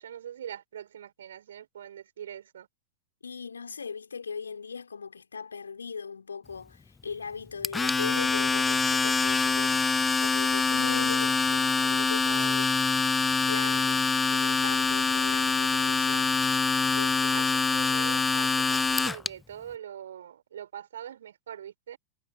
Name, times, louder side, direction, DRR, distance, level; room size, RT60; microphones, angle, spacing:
voice 1, 0.0-2.7 11.8-12.6 13.3-13.5 17.3-22.0, right 10 dB, 65° right, 7.0 m, -43 dB
voice 2, 3.2-9.9 10.2-12.2 12.5-13.1 13.5-16.4 16.9-17.5, left 5 dB, 75° left, 5.6 m, -39 dB
Domestic sounds home sounds, 7.6-19.3, left 4 dB, 10° left, 0.6 m, -25 dB
figure-of-eight pair, 90°, 0 cm